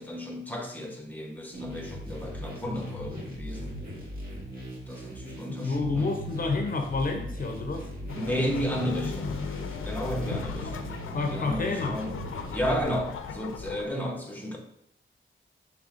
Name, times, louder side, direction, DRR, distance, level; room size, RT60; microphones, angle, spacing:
voice 1, 0.0-3.8 4.9-6.1 8.1-9.4 9.8-10.9 11.2-12.2 12.5-14.6, equal, 10° left, 1 dB, 0.8 m, -33 dB
sound 1, 1.5-12.8, equal, 45° right, 1.2 m, -39 dB
voice 2, 5.5-7.9 11.1-12.0, left 3 dB, 45° left, 4 dB, 0.6 m, -29 dB
sound 2, 8.1-13.9, left 5 dB, 90° left, 0.4 m, -37 dB
6.3 x 3.3 x 2.4 m, 0.77 s
wide cardioid pair, 135°, 20 cm